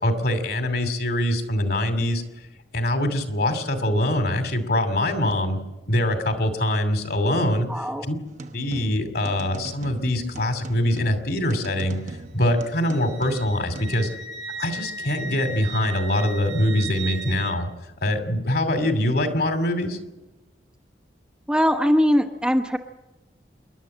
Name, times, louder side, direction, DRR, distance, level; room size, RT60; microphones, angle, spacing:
voice 1, 0.0-2.2 2.7-5.6 5.9-8.2 8.5-12.0 12.3-14.1 14.6-17.7 18.0-20.0, left 1 dB, 60° left, 7 dB, 2.7 m, -23 dB
voice 2, 7.7-8.0 21.5-22.8, equal, 5° right, 5 dB, 1.0 m, -21 dB
sound 1, 8.2-13.8, right 2 dB, 45° right, 1.1 m, -41 dB
Wind instrument woodwind instrument, 11.8-17.6, right 3 dB, 80° right, 5.2 m, -37 dB
27.5 x 11.5 x 8.6 m, 1.1 s
head